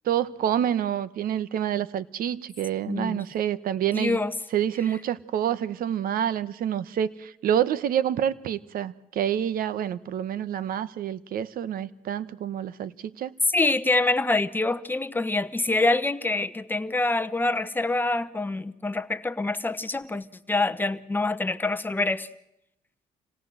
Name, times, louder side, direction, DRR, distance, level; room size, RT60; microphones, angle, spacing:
voice 1, 0.0-4.2 4.5-13.3, right 10 dB, 75° right, 16 dB, 1.0 m, -27 dB
voice 2, 2.9-3.2 3.9-4.3 13.5-22.3, left 2 dB, 15° left, 10 dB, 1.0 m, -26 dB
26.5 x 18.0 x 7.8 m, 0.83 s
cardioid pair, 110°, 15 cm